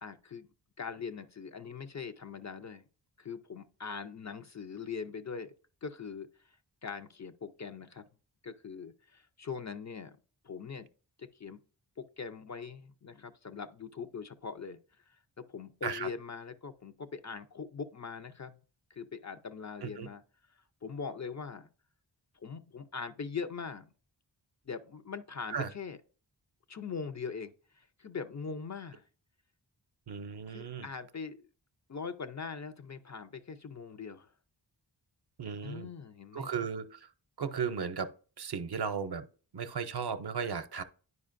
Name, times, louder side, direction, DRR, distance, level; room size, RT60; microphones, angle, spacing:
voice 1, 0.0-0.5 0.8-2.9 3.2-5.5 5.8-6.3 6.8-8.0 8.4-10.2 10.4-10.9 11.2-11.6 12.0-14.8 15.1-18.5 18.9-20.2 20.8-21.7 22.3-23.9 24.7-26.0 26.7-29.0 30.5-31.5 31.9-34.3 35.6-36.5, left 5 dB, 40° left, 0.4 m, -41 dB
voice 2, 30.1-30.9 35.4-35.9 36.3-37.1 37.4-38.1 38.4-39.2 39.5-40.8, right 6 dB, 60° right, 0.6 m, -35 dB
9.6 x 5.0 x 2.5 m
wide cardioid pair, 75°, 44 cm